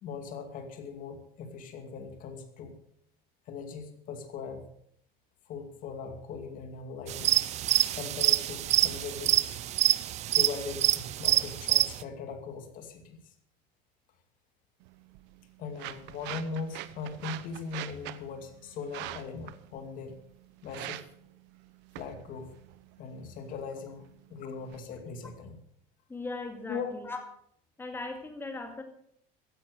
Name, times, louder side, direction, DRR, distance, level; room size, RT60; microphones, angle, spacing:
voice 1, 0.0-2.8 3.5-4.7 5.5-7.4 7.9-9.4 10.3-13.3 15.6-20.2 20.6-21.0 22.0-22.6 23.0-25.6 26.7-26.9, left 5 dB, 40° left, 7 dB, 2.3 m, -40 dB
sound 1, 7.1-12.0, right 13 dB, 35° right, 0.5 m, -26 dB
sound 2, 14.8-24.8, right 16 dB, 60° right, 0.9 m, -45 dB
voice 2, 26.1-27.2 27.8-28.8, left 3 dB, 10° left, 5 dB, 2.2 m, -38 dB
15.5 x 10.5 x 6.5 m, 0.68 s
cardioid pair, 170°, 21 cm